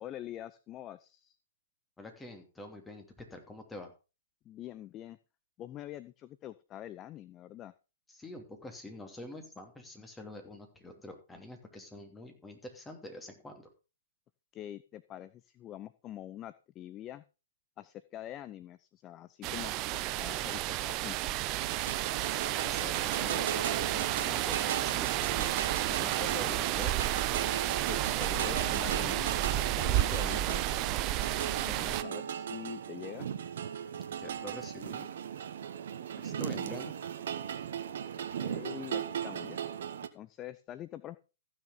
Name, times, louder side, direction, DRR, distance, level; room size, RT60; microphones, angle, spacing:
voice 1, 0.0-1.4 4.5-5.2 5.6-7.7 14.5-17.2 17.8-21.2 27.9-29.3 29.6-30.6 31.6-33.3 36.3-36.8 38.4-39.6 40.1-41.2, left 12 dB, 25° left, 15 dB, 0.5 m, -45 dB
voice 2, 2.0-3.9 8.1-13.7 21.9-25.1 25.3-25.5 25.9-27.1 34.2-35.1 36.1-36.9, left 1 dB, 10° left, 5 dB, 2.9 m, -46 dB
sound 1, 19.4-32.0, right 15 dB, 30° right, 0.6 m, -31 dB
sound 2, 21.6-40.1, right 8 dB, 60° right, 1.2 m, -37 dB
15.0 x 6.5 x 5.1 m, 0.32 s
figure-of-eight pair, 120°, 0 cm